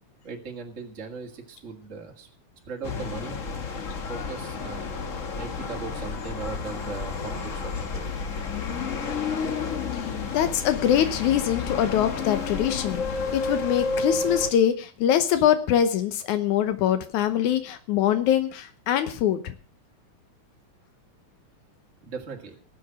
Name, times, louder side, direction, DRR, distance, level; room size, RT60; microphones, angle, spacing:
voice 1, 0.2-2.3 2.7-3.4 4.1-8.1 22.0-22.6, right 5 dB, 30° right, 1 dB, 2.0 m, -38 dB
sound 1, 2.8-14.5, left 4 dB, 55° left, 0.9 m, -31 dB
voice 2, 9.9-13.0 13.3-19.5, left 10 dB, 85° left, 10 dB, 2.5 m, -23 dB
19.0 x 7.7 x 6.2 m, 0.40 s
omnidirectional pair, 3.4 m